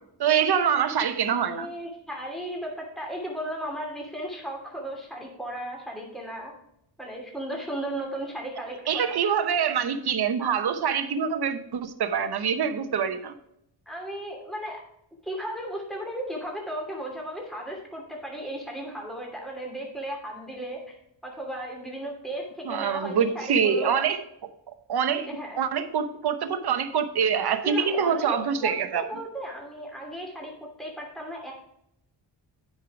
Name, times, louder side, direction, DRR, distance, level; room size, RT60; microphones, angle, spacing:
voice 1, 0.2-1.7 8.9-13.3 22.6-24.2 24.9-25.3 25.6-29.0, right 7 dB, 55° right, 9 dB, 0.9 m, -25 dB
voice 2, 1.4-6.5 7.0-9.1 13.9-14.8 15.2-21.0 21.2-24.0 25.3-25.6 27.6-30.5 30.8-31.5, right 1 dB, ahead, -1 dB, 2.6 m, -35 dB
9.3 x 5.6 x 4.8 m, 0.77 s
wide cardioid pair, 115°, 47 cm